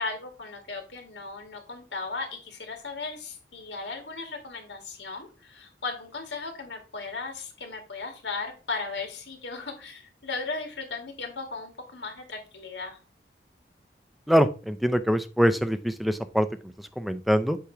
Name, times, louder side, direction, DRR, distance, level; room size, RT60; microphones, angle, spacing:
voice 1, 0.0-13.0, left 3 dB, 90° left, 3 dB, 2.2 m, -36 dB
voice 2, 14.3-17.6, equal, ahead, 10 dB, 0.5 m, -24 dB
8.2 x 3.0 x 5.7 m, 0.34 s
head